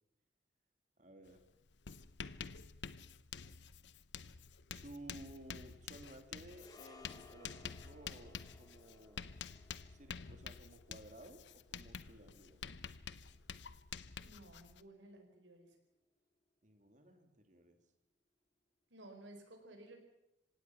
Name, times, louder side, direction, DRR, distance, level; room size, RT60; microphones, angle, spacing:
voice 1, 1.0-1.4 4.7-9.2 9.9-12.6 16.6-17.8, right 1 dB, 40° right, 6 dB, 2.7 m, -56 dB
Writing, 1.3-1.4 1.7-14.8, left 6 dB, 70° left, 0.8 m, -49 dB
sound 1, 6.5-15.0 15.2-15.4, left 3 dB, 20° left, 1.9 m, -64 dB
voice 2, 14.2-15.8 18.9-20.0, right 1 dB, 90° right, 5 dB, 4.9 m, -56 dB
26.5 x 17.0 x 5.8 m, 0.87 s
head